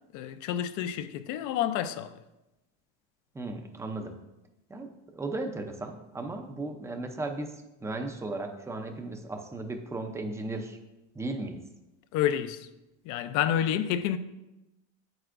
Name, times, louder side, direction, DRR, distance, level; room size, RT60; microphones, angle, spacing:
voice 1, 0.1-2.2 12.1-12.7 13.0-14.2, left 10 dB, 50° left, 0.5 m, -29 dB
voice 2, 3.3-4.2 4.7-10.8 11.1-11.6, right 2 dB, 5° right, 0.5 m, -36 dB
8.6 x 7.9 x 2.5 m
cardioid pair, 145°, 39 cm